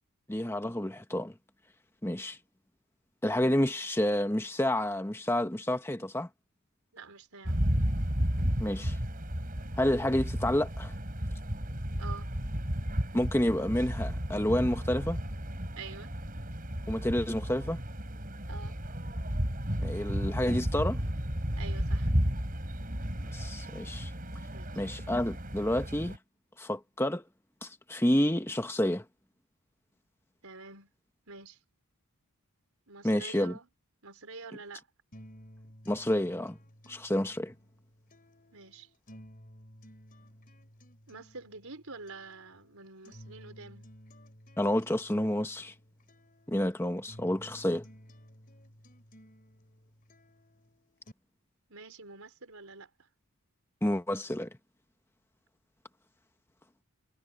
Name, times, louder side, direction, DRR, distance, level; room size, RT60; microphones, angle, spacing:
voice 1, 0.3-1.3 2.0-2.4 3.2-6.3 8.6-9.0 9.8-10.9 13.1-15.2 16.9-17.8 19.8-21.0 23.3-24.1 24.8-26.2 26.6-27.2 27.6-29.0 33.0-33.5 35.9-36.6 36.9-37.5 44.6-45.7 46.5-47.8 53.8-54.5, left 1 dB, 10° left, 1.2 m, -29 dB
voice 2, 6.9-7.7 12.0-12.3 15.7-16.1 18.5-18.8 21.5-22.1 24.5-24.8 30.4-30.9 31.3-31.6 32.9-33.7 34.0-34.9 38.5-38.9 41.1-43.9 51.7-53.1, right 4 dB, 70° right, 4.7 m, -47 dB
sound 1, 7.4-26.2, equal, 40° right, 5.3 m, -33 dB
sound 2, 35.1-51.1, equal, 40° left, 4.1 m, -54 dB
head